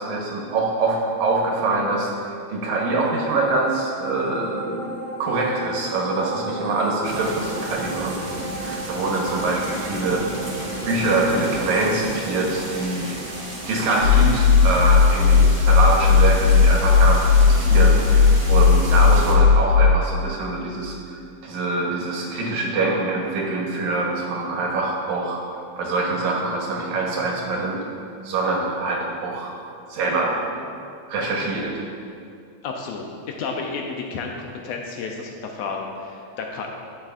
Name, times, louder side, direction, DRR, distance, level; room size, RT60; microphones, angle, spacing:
voice 1, 0.0-10.3 10.9-13.2 13.7-25.4 25.8-27.9 28.2-29.5 29.9-30.4 31.1-31.8, right 2 dB, 85° right, -1 dB, 2.5 m, -24 dB
sound 1, 2.6-16.3 16.7-16.8, right 1 dB, 65° right, 1.4 m, -36 dB
sound 2, 7.0-19.3, right 1 dB, 40° right, 1.4 m, -33 dB
sound 3, 14.0-19.9, left 5 dB, 60° left, 2.5 m, -15 dB
voice 2, 32.6-33.0 33.4-36.7, left 4 dB, 75° left, 2 dB, 1.7 m, -31 dB
10.5 x 7.7 x 2.4 m, 2.4 s
omnidirectional pair, 3.3 m